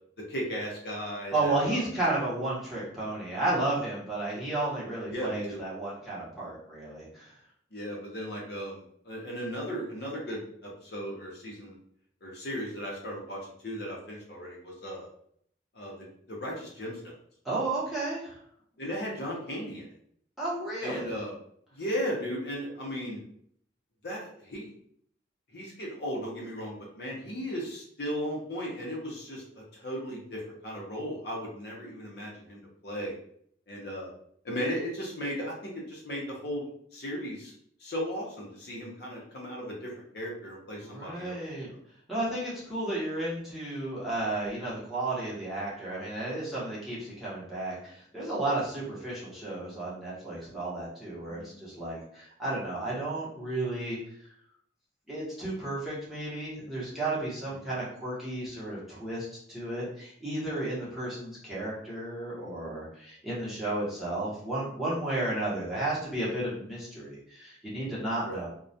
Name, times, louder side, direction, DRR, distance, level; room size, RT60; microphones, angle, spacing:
voice 1, 0.3-1.8 5.1-5.6 7.7-10.4 10.8-11.8 12.2-15.1 15.7-15.9 16.3-17.1 18.8-19.9 20.8-21.3 21.7-23.2 24.0-24.7 25.5-33.1 33.7-34.1 34.4-36.7 36.9-37.5 37.8-41.4 41.7-41.8 51.3-51.5 57.6-57.7 68.2-68.4, equal, 60° left, -3 dB, 0.6 m, -36 dB
voice 2, 1.3-7.2 17.4-18.4 20.4-21.1 40.8-41.7 42.1-54.0 55.1-68.5, right 2 dB, ahead, -9 dB, 0.8 m, -33 dB
2.3 x 2.1 x 2.6 m, 0.65 s
head